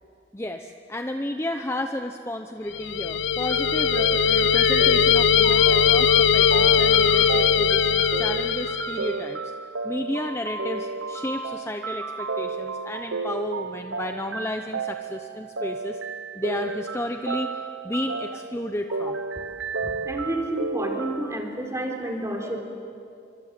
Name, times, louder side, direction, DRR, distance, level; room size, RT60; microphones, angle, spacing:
voice 1, 0.3-9.5 9.8-16.0 16.3-19.2, left 1 dB, 15° left, 5 dB, 0.8 m, -32 dB
sound 1, 2.7-9.1, left 7 dB, 70° left, 0.6 m, -20 dB
sound 2, 3.5-21.4, right 4 dB, 85° right, 1.1 m, -32 dB
voice 2, 19.8-22.6, right 1 dB, 15° right, 2 dB, 3.9 m, -30 dB
28.0 x 25.5 x 8.4 m, 2.5 s
head